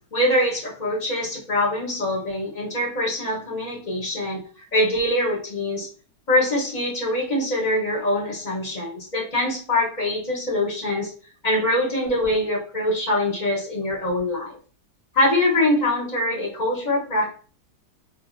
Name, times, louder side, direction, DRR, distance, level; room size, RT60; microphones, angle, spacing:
voice 1, 0.1-4.4 4.7-5.9 6.3-11.1 11.4-14.6 15.1-17.3, left 1 dB, 30° left, -4 dB, 1.1 m, -23 dB
2.6 x 2.6 x 2.5 m, 0.37 s
omnidirectional pair, 1.8 m